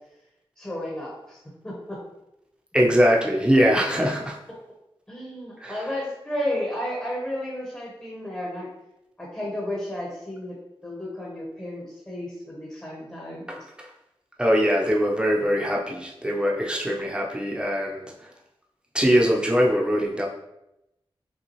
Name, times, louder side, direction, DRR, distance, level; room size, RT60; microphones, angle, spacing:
voice 1, 0.6-1.4 1.6-2.0 5.1-8.7 9.2-10.6 10.8-13.5, left 1 dB, 15° left, -5 dB, 1.1 m, -32 dB
voice 2, 2.7-4.4 5.6-5.9 13.5-13.9 14.4-18.3 18.9-20.3, equal, 10° right, -2 dB, 0.8 m, -22 dB
5.5 x 2.3 x 3.1 m, 0.88 s
wide cardioid pair, 85°, 10 cm